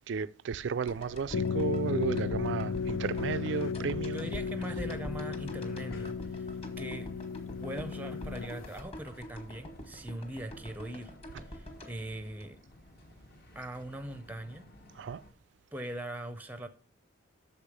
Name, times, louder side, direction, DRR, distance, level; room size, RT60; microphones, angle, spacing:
voice 1, 0.1-4.3 15.0-15.2, right 6 dB, 65° right, 0.3 m, -33 dB
sound 1, 0.8-15.3, left 1 dB, 50° left, 1.1 m, -56 dB
sound 2, 0.9-13.1 13.3-13.4, equal, 30° left, 1.4 m, -46 dB
sound 3, 1.3-8.8, left 5 dB, 80° left, 0.4 m, -35 dB
voice 2, 4.1-7.2 7.6-11.2 11.4-12.6 13.5-14.7 15.7-16.7, right 1 dB, 10° right, 0.5 m, -41 dB
6.8 x 5.0 x 6.9 m
head